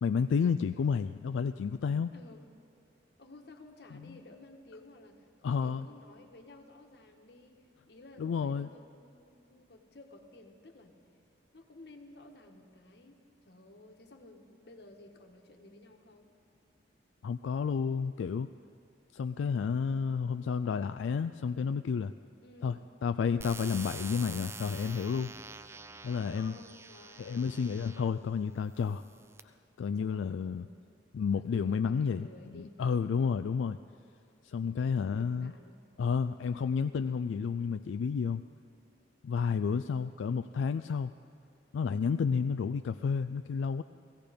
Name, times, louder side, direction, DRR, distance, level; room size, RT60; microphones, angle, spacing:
voice 1, 0.0-2.1 5.4-5.9 8.2-8.7 17.2-18.5 19.1-22.1 22.6-22.8 23.0-25.3 26.0-26.5 27.2-29.0 29.4-30.7 31.1-32.3 32.5-33.8 34.4-35.5 36.0-38.5 39.2-41.1 41.7-43.8, left 6 dB, 85° left, 10 dB, 0.3 m, -31 dB
voice 2, 2.1-2.4 3.2-11.0 11.5-16.3 22.4-22.8 26.3-27.5 30.0-30.5 31.3-33.2 34.5-35.9 39.4-39.7 42.1-42.4, left 2 dB, 60° left, 4 dB, 1.3 m, -54 dB
sound 1, 23.4-28.1 28.8-29.4, right 4 dB, 15° right, 0.4 m, -46 dB
17.0 x 15.5 x 5.1 m, 2.6 s
head